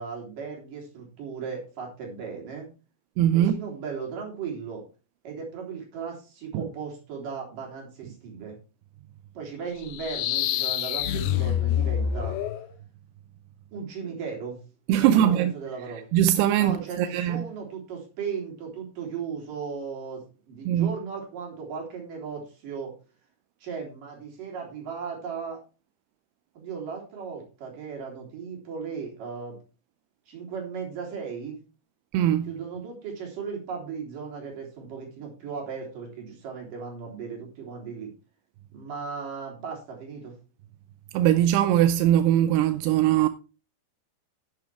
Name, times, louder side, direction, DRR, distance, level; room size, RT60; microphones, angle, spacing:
voice 1, 0.0-2.7 3.3-4.8 5.2-8.6 9.3-12.3 13.7-14.6 15.0-16.1 16.6-22.9 23.6-25.6 26.5-29.6 30.3-31.6 32.5-38.1 38.7-40.3, right 6 dB, 50° right, 5.0 m, -36 dB
voice 2, 3.2-3.6 6.5-6.7 14.9-15.5 16.1-17.5 20.7-20.9 32.1-32.5 41.1-43.3, right 11 dB, 80° right, 2.5 m, -21 dB
sound 1, 9.8-12.7, left 10 dB, 75° left, 2.4 m, -26 dB
11.0 x 9.4 x 3.4 m
omnidirectional pair, 5.0 m